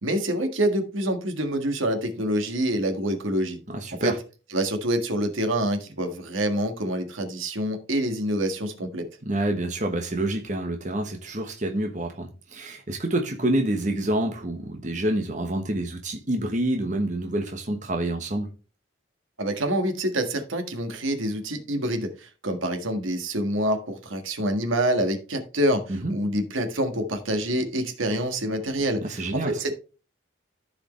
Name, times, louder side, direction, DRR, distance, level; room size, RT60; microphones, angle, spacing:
voice 1, 0.0-3.6 4.0-4.1 4.5-9.1 19.4-29.8, right 1 dB, 90° right, 1.7 m, -26 dB
voice 2, 3.7-4.1 9.3-18.5 25.9-26.1 29.0-29.6, right 1 dB, 40° right, 1.2 m, -27 dB
14.0 x 4.9 x 3.2 m
head